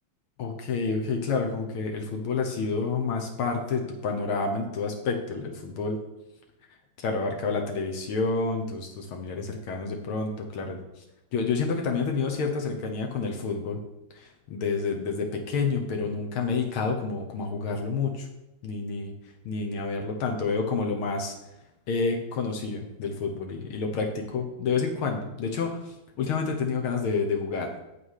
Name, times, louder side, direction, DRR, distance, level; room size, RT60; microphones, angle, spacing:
voice 1, 0.4-6.0 7.0-11.0 11.3-13.8 14.1-18.3 18.6-19.1 19.5-21.3 21.9-27.7, left 4 dB, 85° left, 2 dB, 1.9 m, -29 dB
7.6 x 5.6 x 6.4 m, 0.92 s
omnidirectional pair, 2.3 m